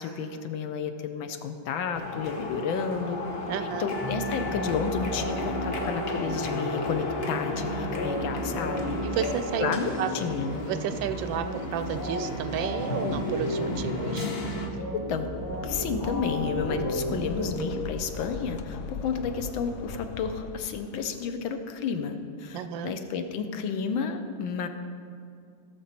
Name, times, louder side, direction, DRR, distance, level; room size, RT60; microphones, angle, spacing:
voice 1, 0.0-3.2 3.6-9.0 9.6-10.6 14.9-15.3 15.6-24.7, left 6 dB, 70° left, 8 dB, 1.5 m, -31 dB
sound 1, 1.9-14.7, left 2 dB, 45° left, 0.8 m, -35 dB
voice 2, 3.5-3.9 9.0-9.7 10.0-10.1 10.7-11.5 11.7-14.3 22.5-22.9, right 8 dB, 75° right, 10 dB, 1.2 m, -31 dB
sound 2, 4.0-18.3, right 1 dB, 15° left, 1.0 m, -34 dB
sound 3, 15.0-21.0, left 5 dB, 90° left, 0.9 m, -38 dB
16.5 x 6.9 x 4.3 m, 2.4 s
omnidirectional pair, 2.3 m